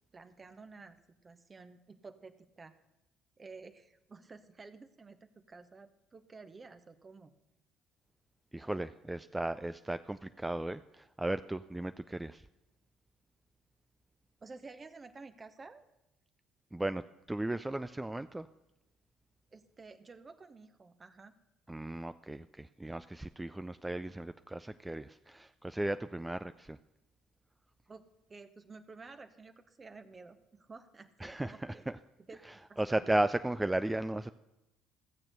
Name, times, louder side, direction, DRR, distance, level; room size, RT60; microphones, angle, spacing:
voice 1, 0.1-2.7 3.4-7.3 14.4-15.8 19.5-21.3 27.9-31.8 32.3-33.2, right 4 dB, 30° right, 9 dB, 0.9 m, -52 dB
voice 2, 8.5-12.4 16.7-17.0 17.3-18.5 21.7-26.8 31.2-31.5 31.9-32.0 32.8-34.3, right 1 dB, 10° right, 12 dB, 0.4 m, -35 dB
15.0 x 7.3 x 6.5 m, 0.96 s
figure-of-eight pair, 55°, 0 cm